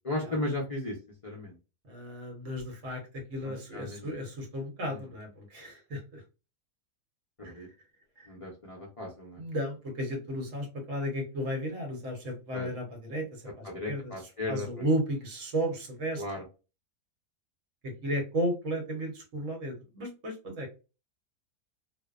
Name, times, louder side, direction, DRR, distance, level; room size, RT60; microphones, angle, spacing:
voice 1, 0.0-1.0 1.2-1.6 3.4-4.1 4.8-5.0 7.4-7.7 8.3-9.4 12.5-12.7 13.6-14.9 16.2-16.4, left 2 dB, 60° left, -3 dB, 0.3 m, -36 dB
voice 2, 1.9-6.2 7.4-7.7 8.2-8.3 9.4-14.1 14.5-16.2 17.8-20.7, equal, 60° right, 2 dB, 1.2 m, -34 dB
2.6 x 2.1 x 2.4 m, 0.31 s
omnidirectional pair, 1.7 m